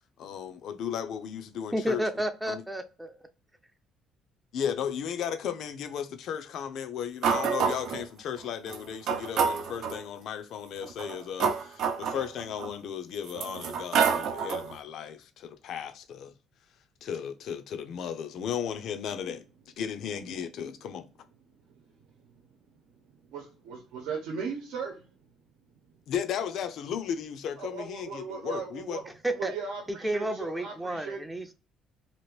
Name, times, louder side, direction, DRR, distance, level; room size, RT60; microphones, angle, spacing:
voice 1, 0.2-2.1 2.5-2.6 4.5-16.3 17.0-19.5 19.8-21.1 26.1-29.0, left 8 dB, 60° left, 0.5 m, -35 dB
voice 2, 1.7-3.2 29.2-29.5 30.0-31.5, right 1 dB, 5° right, 0.4 m, -31 dB
sound 1, 7.2-8.0 8.7-8.8 9.1-10.0 10.8-12.7 13.3-14.7, right 6 dB, 60° right, 0.5 m, -28 dB
voice 3, 21.5-25.3 25.8-25.9 27.6-31.2, right 5 dB, 85° right, 0.9 m, -39 dB
2.9 x 2.5 x 3.2 m
cardioid pair, 140°, 0 cm